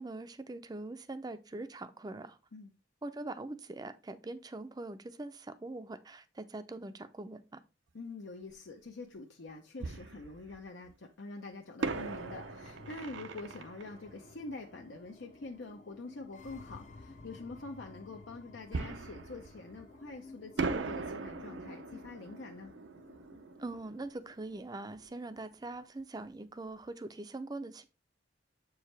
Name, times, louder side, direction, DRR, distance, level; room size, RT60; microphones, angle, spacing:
voice 1, 0.0-2.4 3.0-7.6 23.6-27.9, right 2 dB, 20° right, 0.4 m, -42 dB
voice 2, 7.9-22.7, left 3 dB, 75° left, 0.7 m, -45 dB
Fireworks, 8.5-8.6 9.8-10.9 11.8-15.3 18.7-20.2 20.6-25.1 25.4-25.5 26.0-26.2, right 4 dB, 80° right, 0.6 m, -40 dB
sound 1, 11.8-25.8, left 3 dB, 40° left, 0.5 m, -54 dB
7.1 x 4.7 x 3.3 m
head